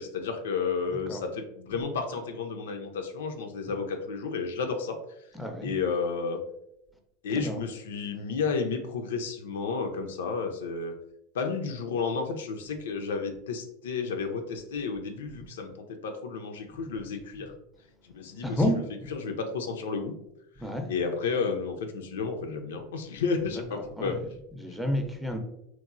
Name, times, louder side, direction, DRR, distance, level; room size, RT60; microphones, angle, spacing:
voice 1, 0.0-5.0 5.6-6.4 7.2-10.9 11.3-17.5 18.1-18.6 19.1-20.1 20.9-24.2, left 5 dB, 70° left, 5 dB, 0.3 m, -32 dB
voice 2, 5.3-5.7 7.4-7.6 16.8-16.9 18.4-19.1 20.6-20.9 23.5-25.4, equal, ahead, 4 dB, 0.4 m, -31 dB
2.9 x 2.0 x 2.4 m, 0.81 s
hypercardioid pair, 85°, 0 cm